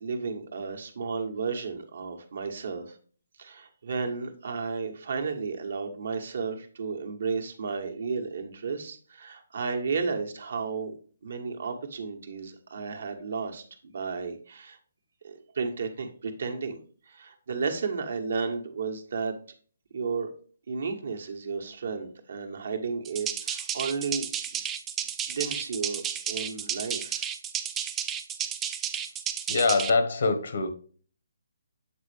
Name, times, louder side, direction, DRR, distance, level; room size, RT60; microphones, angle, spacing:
voice 1, 0.0-3.0 3.4-10.9 11.2-14.8 15.2-19.3 19.9-20.3 20.7-24.3 25.3-27.3, right 5 dB, 65° right, 4 dB, 1.3 m, -33 dB
sound 1, 23.0-29.9, right 8 dB, 15° right, 0.4 m, -32 dB
voice 2, 29.5-30.7, left 3 dB, 65° left, 8 dB, 1.3 m, -24 dB
8.0 x 4.0 x 3.3 m, 0.42 s
hypercardioid pair, 145°, 0 cm